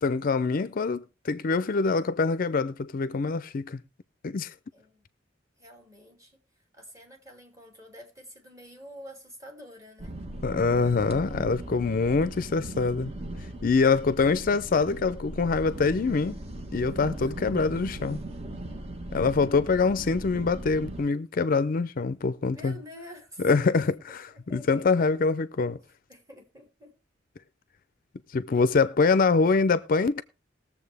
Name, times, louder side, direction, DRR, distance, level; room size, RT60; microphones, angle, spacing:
voice 1, 0.0-3.8 4.2-4.5 10.4-13.1 13.6-16.4 16.7-18.2 19.1-22.8 23.4-25.8 28.3-30.2, left 4 dB, 50° left, 0.5 m, -24 dB
voice 2, 4.7-5.0 5.6-6.4 6.7-10.1 17.2-17.3 22.5-23.5 24.3-24.8 26.1-26.9, equal, 20° right, 2.7 m, -48 dB
sound 1, 10.0-21.0, right 1 dB, 35° right, 1.3 m, -39 dB
20.0 x 7.2 x 3.4 m
head